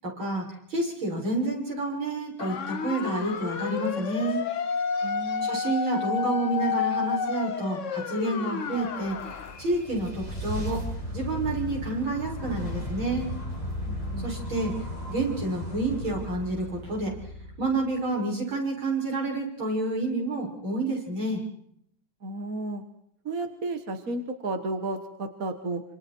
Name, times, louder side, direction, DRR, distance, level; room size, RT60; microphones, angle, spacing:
voice 1, 0.0-4.4 5.4-9.2 9.6-10.8 11.1-13.3 14.2-14.8 15.1-17.1 17.6-21.4, right 2 dB, 75° right, -2 dB, 7.7 m, -29 dB
sound 1, 2.4-9.6, left 6 dB, 45° left, 1.0 m, -30 dB
voice 2, 5.0-5.5 13.9-14.3 22.2-22.8 23.3-25.8, right 2 dB, 45° right, 7 dB, 1.9 m, -33 dB
sound 2, 8.8-18.1, left 1 dB, 20° left, 6.2 m, -35 dB
27.0 x 26.5 x 4.6 m, 0.71 s
omnidirectional pair, 2.3 m